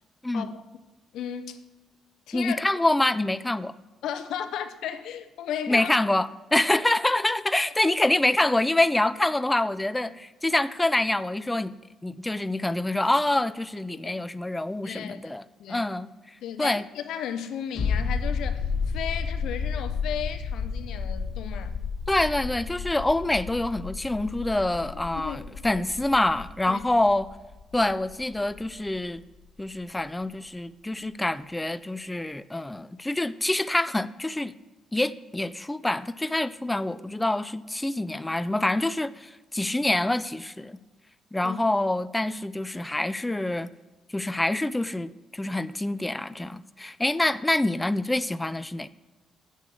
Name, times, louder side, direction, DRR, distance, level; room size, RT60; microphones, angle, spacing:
voice 1, 1.1-1.6 2.3-2.6 4.0-5.9 14.0-14.1 14.8-15.3 15.6-15.9 16.4-21.8 25.1-25.8 26.7-26.8 41.4-41.7, left 9 dB, 80° left, 0.7 m, -35 dB
voice 2, 2.3-3.7 5.7-11.8 12.0-15.4 15.7-16.1 16.6-16.8 22.1-27.3 27.7-29.2 29.6-34.5 34.9-40.8 41.3-43.7 44.1-48.9, left 1 dB, 10° left, 0.3 m, -26 dB
sound 1, 17.7-29.1 29.4-29.5, left 5 dB, 55° left, 2.6 m, -32 dB
6.9 x 6.4 x 7.8 m
cardioid pair, 90°, 0 cm